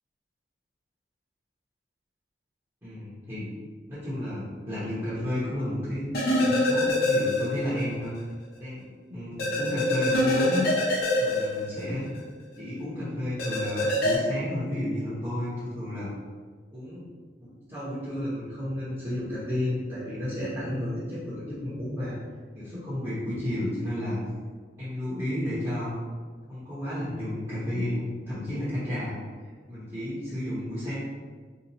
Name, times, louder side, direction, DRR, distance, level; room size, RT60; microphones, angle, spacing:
voice 1, 2.8-3.5 3.9-6.0 6.3-8.1 8.6-8.8 9.1-10.7 11.2-12.2 12.6-16.1 16.7-17.1 17.4-22.2 22.6-24.2 24.8-25.9 26.5-29.2 29.7-30.9, left 1 dB, 15° right, -12 dB, 0.9 m, -32 dB
sound 1, 6.1-7.8 8.1-8.2 9.4-12.2 13.4-14.1, left 1 dB, 55° left, 0.7 m, -25 dB
2.7 x 2.5 x 4.0 m, 1.5 s
head